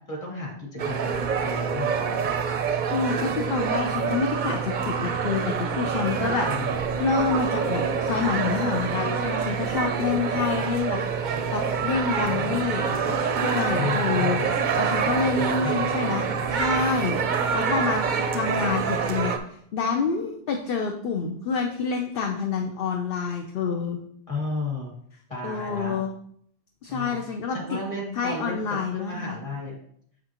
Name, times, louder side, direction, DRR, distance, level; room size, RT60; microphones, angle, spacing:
voice 1, 0.1-1.9 3.9-4.0 6.5-6.8 12.3-12.6 13.8-14.6 15.4-15.9 23.7-23.8 24.3-24.9 25.3-26.0 26.9-27.2 27.5-29.8, left 3 dB, 30° left, -2 dB, 1.8 m, -33 dB
sound 1, 0.8-19.4, right 6 dB, 55° right, 0.6 m, -26 dB
voice 2, 2.9-6.5 7.0-13.0 13.4-18.0 18.3-24.0 25.4-26.1 26.8-27.8 28.2-29.4, left 5 dB, 60° left, 2 dB, 0.8 m, -28 dB
6.7 x 6.1 x 2.9 m, 0.66 s
omnidirectional pair, 1.1 m